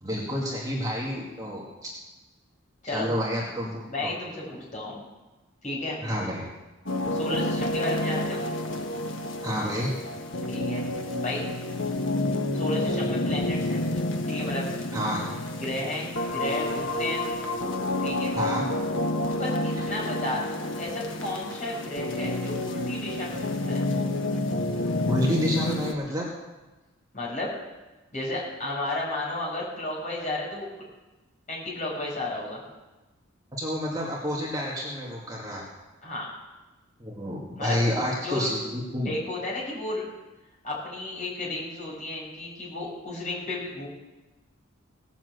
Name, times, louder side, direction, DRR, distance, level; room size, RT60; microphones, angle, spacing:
voice 1, 0.0-1.6 2.9-4.1 6.0-6.5 9.4-10.0 14.9-15.4 18.4-18.7 19.7-19.8 25.1-26.3 33.6-35.6 37.0-39.1, equal, 15° right, -4 dB, 2.1 m, -29 dB
voice 2, 3.9-5.0 5.6-6.0 7.1-8.4 10.5-10.8 11.2-11.4 12.5-13.8 14.3-14.7 15.6-17.2 18.0-18.3 19.3-23.8 27.1-27.5 28.1-30.7 31.5-32.6 36.0-36.3 37.6-38.5 39.0-40.0 40.6-43.9, left 2 dB, 35° left, -5 dB, 5.7 m, -33 dB
sound 1, 6.9-25.9, left 1 dB, 65° left, 1.3 m, -29 dB
18.0 x 7.4 x 8.0 m, 1.1 s
head